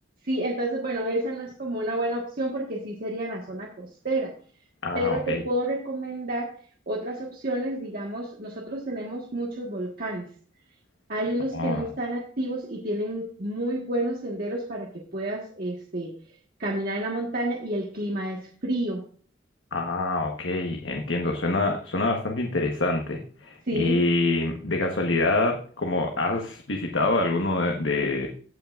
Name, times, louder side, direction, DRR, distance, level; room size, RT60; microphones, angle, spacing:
voice 1, 0.2-4.3 4.9-6.5 6.9-10.3 11.1-16.1 16.6-19.0 23.7-24.0, right 1 dB, 50° right, -2 dB, 1.5 m, -30 dB
voice 2, 4.8-5.4 11.5-11.8 19.7-28.3, left 2 dB, 90° left, 2 dB, 1.3 m, -26 dB
16.5 x 5.8 x 2.5 m, 0.43 s
head